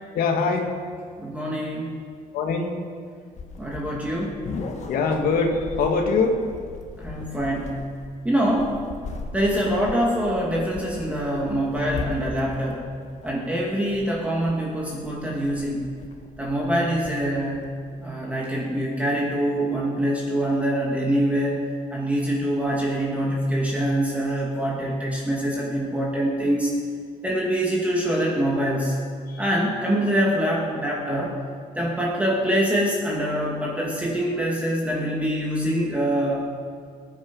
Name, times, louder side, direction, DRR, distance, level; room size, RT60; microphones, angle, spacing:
voice 1, 0.1-0.7 2.3-2.8 4.9-6.4 29.3-29.4, left 4 dB, 85° left, 3 dB, 1.9 m, -23 dB
voice 2, 1.2-2.0 3.6-4.4 7.0-7.9 8.2-8.7 9.3-12.9 13.2-15.8 16.4-17.8 18.0-21.6 21.9-26.7 27.2-29.0 29.4-31.4 31.8-36.5, equal, 10° right, -3 dB, 2.2 m, -24 dB
sound 1, 3.3-18.1, left 4 dB, 50° left, 1.7 m, -38 dB
20.0 x 9.6 x 5.4 m, 2.1 s
cardioid pair, 130°, 15 cm